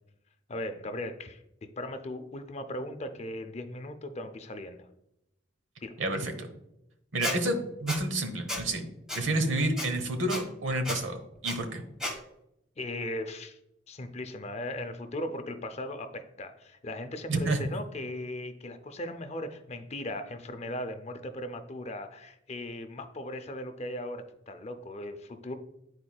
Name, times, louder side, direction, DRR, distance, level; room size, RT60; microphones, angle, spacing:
voice 1, 0.5-4.9 5.8-6.0 9.3-9.5 12.8-13.6 13.9-25.5, left 1 dB, 35° left, 8 dB, 0.5 m, -38 dB
voice 2, 6.0-6.5 7.1-8.9 9.1-11.8 17.3-17.7, right 1 dB, 90° right, 6 dB, 1.0 m, -29 dB
Squeak, 7.2-7.4 7.9-8.0 8.5-8.6 9.1-9.2 9.8-9.9 10.3-10.4 10.8-11.0 11.4-11.6 12.0-12.1, left 1 dB, 5° right, 1.4 m, -32 dB
10.5 x 4.3 x 2.3 m, 0.83 s
head